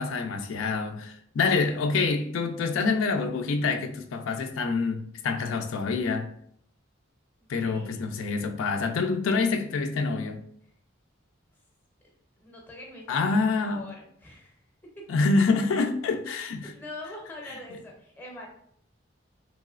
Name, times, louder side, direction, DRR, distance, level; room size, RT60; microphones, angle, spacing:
voice 1, 0.0-6.3 7.5-10.4 13.1-13.8 15.1-16.7, left 4 dB, 85° left, 0.3 m, -26 dB
voice 2, 7.6-8.1 10.6-10.7 12.0-14.6 15.0-15.1 16.6-18.5, left 1 dB, 10° left, 0.6 m, -44 dB
3.0 x 2.9 x 2.4 m
head